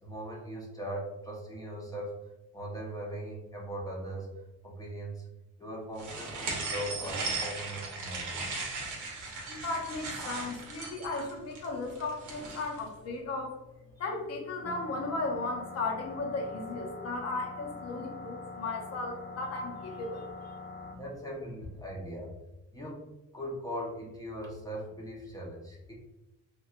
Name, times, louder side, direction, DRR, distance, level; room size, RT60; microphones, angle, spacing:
voice 1, 0.0-2.2 2.5-5.3 5.6-8.5 21.0-22.3 22.7-23.1 23.3-25.9, right 1 dB, 10° left, -4 dB, 0.8 m, -40 dB
sound 1, 6.0-12.8, right 3 dB, 80° right, 0.9 m, -37 dB
voice 2, 9.5-13.6 14.0-20.3, left 3 dB, 55° left, 1 dB, 0.8 m, -35 dB
sound 2, 14.6-21.0, left 3 dB, 35° left, 0.4 m, -44 dB
3.0 x 2.4 x 2.4 m, 0.98 s
cardioid pair, 90°, 30 cm